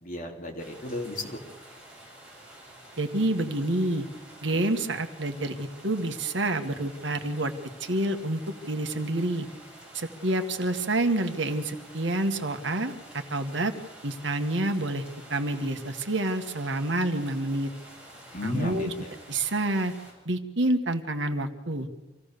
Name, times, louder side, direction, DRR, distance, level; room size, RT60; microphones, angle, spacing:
voice 1, 0.0-1.4 18.3-19.1, left 2 dB, 40° left, 1 dB, 3.3 m, -34 dB
sound 1, 0.6-20.1, right 1 dB, 5° right, 7.0 m, -49 dB
voice 2, 3.0-4.0 4.4-7.5 7.8-8.4 8.7-9.5 9.9-13.7 14.0-17.7 18.4-18.9 19.3-19.9 20.2-21.9, right 1 dB, 70° right, 6 dB, 1.7 m, -28 dB
26.0 x 16.0 x 6.8 m, 1.1 s
head